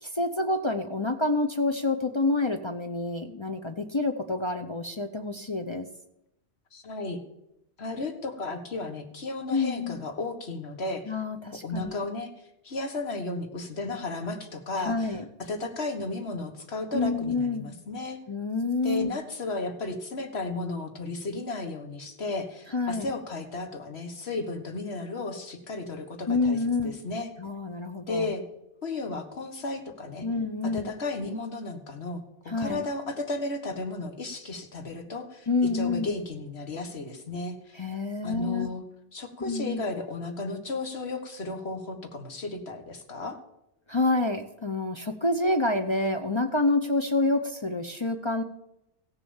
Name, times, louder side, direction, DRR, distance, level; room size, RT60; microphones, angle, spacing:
voice 1, 0.0-5.9 9.5-10.0 11.1-11.9 14.8-15.2 16.9-17.7 18.3-19.1 22.7-23.1 26.3-26.9 27.4-28.3 30.2-30.9 32.5-32.9 35.5-36.1 37.7-38.7 39.4-39.8 43.9-48.4, left 2 dB, 30° left, 4 dB, 0.7 m, -28 dB
voice 2, 6.7-7.2 7.8-11.0 11.6-12.3 12.6-15.1 15.4-18.2 18.8-26.6 26.8-27.3 28.1-28.4 28.8-30.3 30.6-35.5 35.7-37.8 38.2-38.8 39.1-43.4, left 2 dB, 65° left, 6 dB, 1.8 m, -34 dB
15.5 x 7.0 x 7.1 m, 0.85 s
omnidirectional pair, 1.2 m